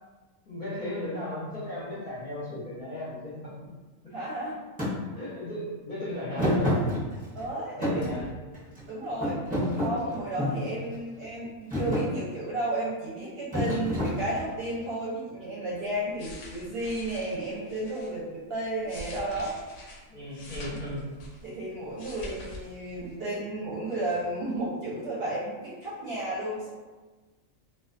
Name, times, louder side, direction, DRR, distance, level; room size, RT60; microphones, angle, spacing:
voice 1, 0.5-3.3 3.6-3.7 5.1-6.8 7.8-8.4 10.5-10.8 20.1-21.0, left 1 dB, 45° left, -10 dB, 0.7 m, -36 dB
voice 2, 4.1-4.6 7.3-8.0 8.9-9.4 9.7-19.5 21.4-26.7, right 1 dB, 55° right, -7 dB, 0.8 m, -33 dB
Thump thud, 4.8-4.9 6.4-7.4 7.8-8.8 9.2-10.7 11.2-11.4 11.7-12.1 13.5-14.6, left 1 dB, 10° right, 0.4 m, -28 dB
sound 1, 16.1-18.1 18.6-21.6 21.8-22.6 22.9-23.1, left 1 dB, 70° left, 0.9 m, -45 dB
2.3 x 2.3 x 2.4 m, 1.2 s
omnidirectional pair, 1.4 m